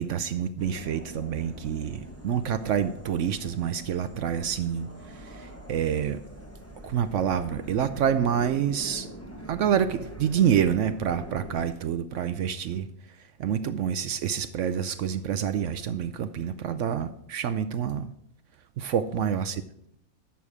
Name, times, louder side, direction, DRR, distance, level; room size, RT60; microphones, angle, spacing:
voice 1, 0.0-6.2 6.8-9.1 9.5-12.9 13.4-18.1 18.8-19.6, right 8 dB, 70° right, 11 dB, 0.9 m, -27 dB
sound 1, 0.6-11.7, right 1 dB, 10° left, 0.9 m, -43 dB
11.5 x 7.1 x 4.9 m, 0.74 s
omnidirectional pair, 1.5 m